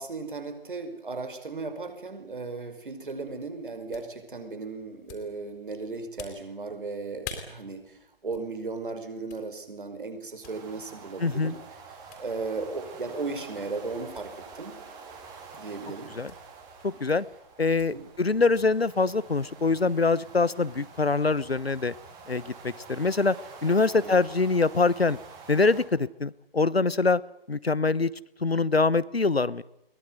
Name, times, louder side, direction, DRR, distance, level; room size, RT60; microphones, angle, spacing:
voice 1, 0.0-8.0 8.2-11.6 12.2-14.8 15.6-16.1 17.9-18.1 24.0-24.2, right 3 dB, 55° right, 8 dB, 5.5 m, -36 dB
sound 1, 3.1-18.7, left 7 dB, 20° left, 3.8 m, -51 dB
sound 2, 10.4-25.8, right 5 dB, 10° right, 2.8 m, -47 dB
voice 2, 11.2-11.5 16.1-16.3 16.8-17.2 17.6-21.9 22.3-23.4 23.6-25.2 25.5-27.2 27.5-28.1 28.4-29.6, left 3 dB, 80° left, 19 dB, 1.1 m, -24 dB
22.5 x 21.0 x 9.4 m, 0.82 s
figure-of-eight pair, 145°, 30 cm